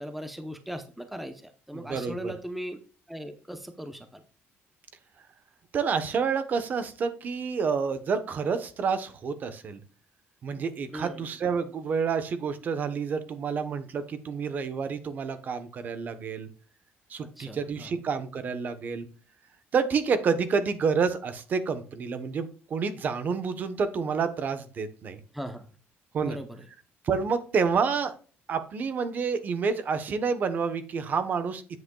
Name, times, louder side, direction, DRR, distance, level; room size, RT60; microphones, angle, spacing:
voice 1, 0.0-2.8 3.1-4.2 10.9-11.3 17.4-17.9 25.3-25.7 26.2-26.6, equal, 5° right, 7 dB, 0.8 m, -38 dB
voice 2, 1.7-2.3 5.7-9.8 10.4-16.5 17.1-19.1 19.7-25.2 26.1-26.4 27.0-28.1 28.5-31.6, right 5 dB, 40° right, 11 dB, 1.0 m, -29 dB
9.4 x 7.8 x 2.3 m, 0.38 s
cardioid pair, 155°, 5 cm